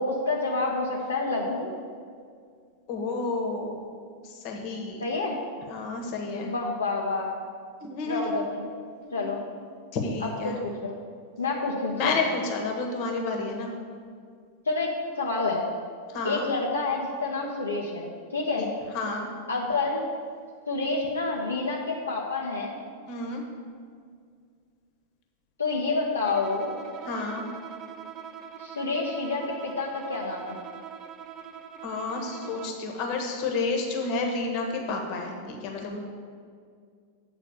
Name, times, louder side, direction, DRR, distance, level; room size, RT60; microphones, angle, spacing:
voice 1, 0.0-1.7 5.0-5.3 6.4-7.3 8.1-8.7 9.1-9.4 10.4-10.9 11.4-12.2 14.7-15.6 16.2-18.7 19.5-20.0 20.7-22.8 25.6-26.8 28.6-30.6, left 3 dB, 75° left, -2 dB, 0.7 m, -28 dB
voice 2, 2.9-3.8 4.2-5.0 5.7-6.5 7.8-8.4 9.0-9.4 9.9-10.6 11.9-13.7 16.1-16.5 18.6-18.7 18.9-19.3 23.1-23.4 27.0-27.4 31.8-36.0, left 3 dB, 45° left, 2 dB, 1.2 m, -30 dB
Bowed string instrument, 26.2-32.9, right 8 dB, 30° right, 0.4 m, -43 dB
8.3 x 4.0 x 6.9 m, 2.1 s
figure-of-eight pair, 90°, 0 cm